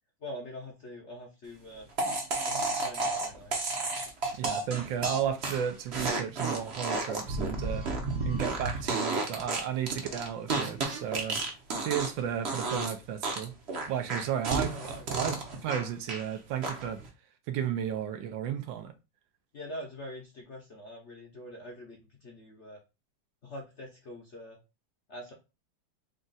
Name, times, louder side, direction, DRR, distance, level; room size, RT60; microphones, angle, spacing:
voice 1, 0.2-1.9 2.4-3.5 14.5-15.1 19.5-22.8 23.4-24.6 25.1-25.3, left 1 dB, 55° left, 0.8 m, -44 dB
sound 1, 2.0-12.2 12.5-12.9 13.2-16.3 16.6-17.1, right 3 dB, 50° right, 0.8 m, -32 dB
voice 2, 4.4-7.9 8.2-11.4 11.8-13.5 13.9-17.0 17.5-18.9, right 9 dB, 80° right, 1.3 m, -33 dB
3.9 x 2.4 x 3.9 m
omnidirectional pair, 2.1 m